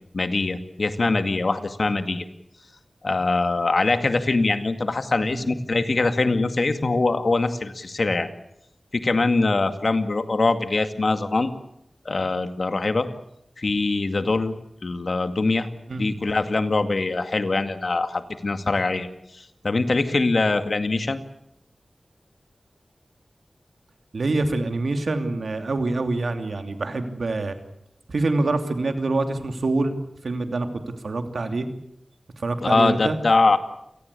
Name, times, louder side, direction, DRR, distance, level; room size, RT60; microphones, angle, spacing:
voice 1, 0.1-2.2 3.0-8.3 8.9-11.5 12.1-13.1 13.6-14.5 14.8-15.7 16.0-19.1 19.3-21.2 32.6-33.6, left 3 dB, 65° left, 9 dB, 2.1 m, -23 dB
voice 2, 5.3-5.8 15.9-16.1 24.1-27.6 28.1-30.0 30.2-31.7 32.4-33.2, right 2 dB, 85° right, 7 dB, 2.8 m, -26 dB
28.5 x 18.5 x 8.4 m, 0.77 s
wide cardioid pair, 75°, 0 cm